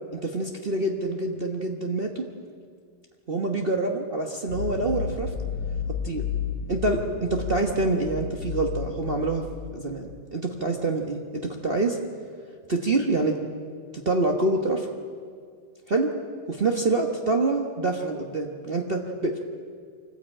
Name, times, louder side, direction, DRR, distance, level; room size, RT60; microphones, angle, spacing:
voice 1, 0.1-2.3 3.3-5.3 6.0-6.2 6.7-9.4 9.7-12.0 12.7-13.4 14.0-14.9 15.9-16.1 16.5-19.4, right 2 dB, 35° right, 2 dB, 1.2 m, -26 dB
sound 1, 4.5-10.2, left 7 dB, 70° left, 1.7 m, -32 dB
24.5 x 14.5 x 8.9 m, 2.1 s
omnidirectional pair, 2.0 m